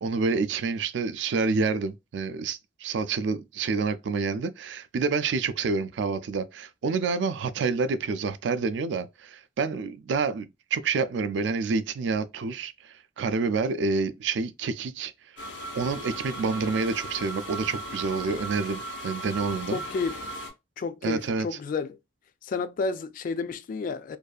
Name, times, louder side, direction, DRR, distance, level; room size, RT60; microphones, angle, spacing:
voice 1, 0.0-15.1 15.7-19.8 21.0-21.6, right 4 dB, 75° right, 0.3 m, -28 dB
sound 1, 15.4-20.5, right 1 dB, 85° left, 1.1 m, -37 dB
voice 2, 19.7-20.3 20.8-22.0 22.4-24.2, left 4 dB, 50° left, 0.3 m, -31 dB
2.6 x 2.3 x 2.3 m
head